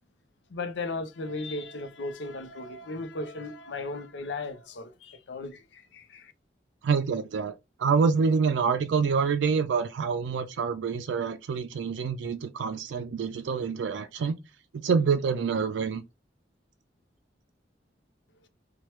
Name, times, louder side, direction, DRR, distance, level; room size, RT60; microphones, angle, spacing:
voice 1, 0.5-6.3, left 2 dB, 70° left, 0.6 m, -36 dB
voice 2, 6.8-7.5 7.8-14.4 14.7-16.0, right 5 dB, 85° right, 0.3 m, -26 dB
2.9 x 2.2 x 3.1 m
head